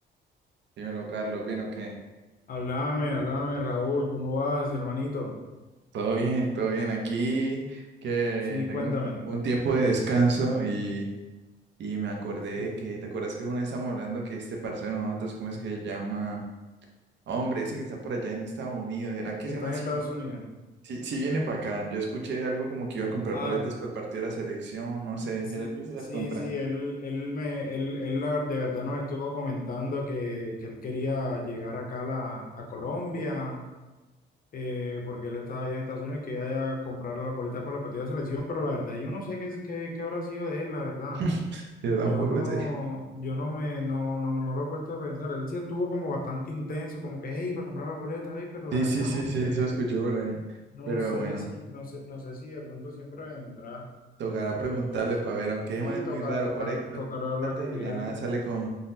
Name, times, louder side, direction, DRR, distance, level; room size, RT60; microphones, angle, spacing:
voice 1, 0.8-1.9 5.9-9.0 9.2-11.1 11.8-16.4 17.3-20.0 20.8-26.5 41.2-42.7 48.7-50.4 50.9-51.4 54.2-56.8 57.4-58.7, right 3 dB, 65° right, 0 dB, 0.7 m, -30 dB
voice 2, 2.5-5.3 8.5-9.2 12.6-12.8 19.5-20.4 23.3-23.6 25.6-25.7 26.1-33.6 34.5-41.2 42.0-49.8 50.7-53.8 54.5-55.1 55.7-58.1, left 2 dB, 45° left, 0 dB, 0.7 m, -32 dB
3.8 x 2.1 x 2.6 m, 1.1 s
cardioid pair, 90°, 20 cm